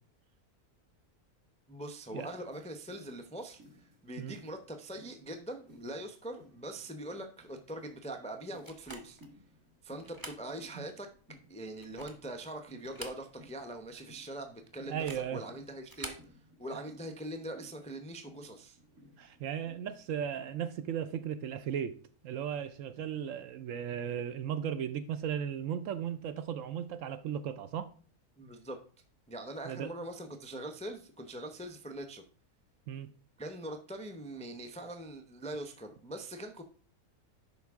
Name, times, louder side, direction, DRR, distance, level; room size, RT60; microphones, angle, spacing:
voice 1, 1.7-9.2 9.8-11.1 11.5-16.1 16.6-18.8 28.4-28.8 29.3-32.2 33.4-36.6, right 1 dB, 10° left, 0.3 m, -42 dB
sound 1, 2.1-21.0, left 1 dB, 50° right, 2.6 m, -60 dB
sound 2, 8.6-9.3 10.0-10.5 10.9-11.0 11.7-12.3 12.8-13.6 13.9-14.0 14.9-15.3 15.8-16.3, right 1 dB, 15° right, 0.8 m, -46 dB
voice 2, 14.9-15.4 19.2-22.0 22.2-27.9 29.7-29.9 32.9-33.1, right 9 dB, 70° right, 0.8 m, -36 dB
11.0 x 4.6 x 3.5 m
omnidirectional pair, 1.6 m